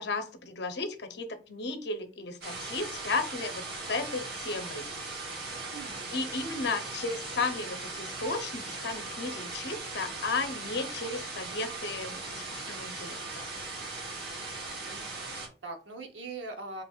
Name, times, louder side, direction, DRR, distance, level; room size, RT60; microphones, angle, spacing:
voice 1, 0.0-3.6 3.9-4.9 6.1-13.5, left 3 dB, 65° left, 7 dB, 0.7 m, -34 dB
sound 1, 2.4-15.5, right 3 dB, 60° right, 1.1 m, -39 dB
voice 2, 5.7-6.2 14.8-16.8, right 3 dB, 80° right, 4 dB, 0.9 m, -42 dB
4.3 x 3.1 x 2.3 m, 0.34 s
head